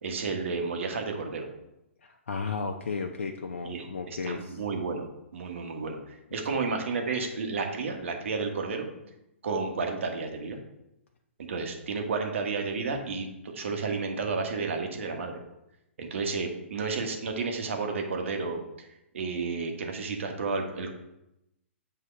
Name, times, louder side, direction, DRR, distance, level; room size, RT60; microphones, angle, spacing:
voice 1, 0.0-1.5 3.6-5.1 5.3-8.9 9.4-10.6 11.5-15.3 16.0-18.9 19.1-20.9, right 4 dB, 65° right, 3 dB, 1.3 m, -32 dB
voice 2, 2.0-4.6 6.5-6.7, left 4 dB, 75° left, 3 dB, 0.6 m, -34 dB
8.0 x 2.8 x 5.2 m, 0.88 s
hypercardioid pair, 130°, 7 cm